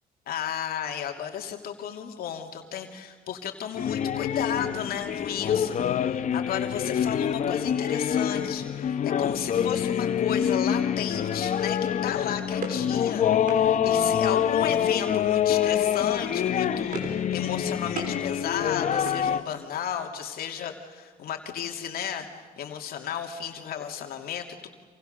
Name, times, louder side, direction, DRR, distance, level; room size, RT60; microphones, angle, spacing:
voice 1, 0.3-24.7, left 9 dB, 60° left, 3 dB, 2.8 m, -34 dB
sound 1, 3.8-19.4, left 9 dB, 45° left, 1.1 m, -26 dB
sound 2, 12.2-13.6 14.9-15.3 15.6-15.9 16.2-17.3 17.5-18.2 18.6-19.8, right 3 dB, 55° right, 5.9 m, -39 dB
29.0 x 27.5 x 6.8 m, 1.5 s
cardioid pair, 110°, 17 cm